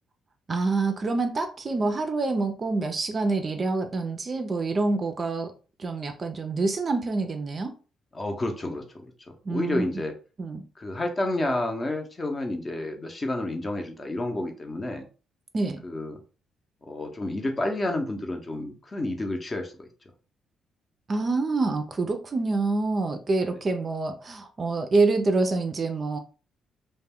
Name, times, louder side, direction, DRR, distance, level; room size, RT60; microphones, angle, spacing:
voice 1, 0.5-5.5 5.8-7.7 9.5-9.8 10.4-10.6 15.5-15.8 21.1-26.2, right 3 dB, 40° right, 0.4 m, -26 dB
voice 2, 8.1-10.1 10.8-15.1 15.8-16.2 16.9-19.9, left 1 dB, 30° left, 0.6 m, -30 dB
2.2 x 2.1 x 3.4 m
cardioid pair, 90°, 0 cm